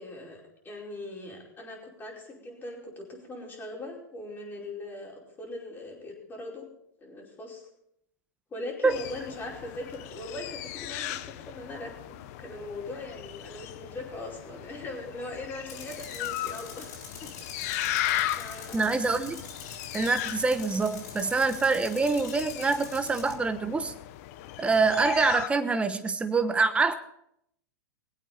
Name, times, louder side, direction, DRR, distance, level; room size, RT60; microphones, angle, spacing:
voice 1, 0.0-6.7 7.0-7.6 8.5-16.9 17.2-17.3 18.3-18.9, left 2 dB, 20° left, -2 dB, 4.9 m, -40 dB
sound 1, 8.9-25.5, left 14 dB, 55° left, 0.9 m, -37 dB
Tools, 15.7-23.4, left 5 dB, 70° left, 3.7 m, -45 dB
voice 2, 18.7-19.4 19.9-23.9 24.6-26.9, right 4 dB, 10° right, 10 dB, 1.1 m, -25 dB
21.5 x 8.5 x 4.3 m, 0.75 s
hypercardioid pair, 120°, 10 cm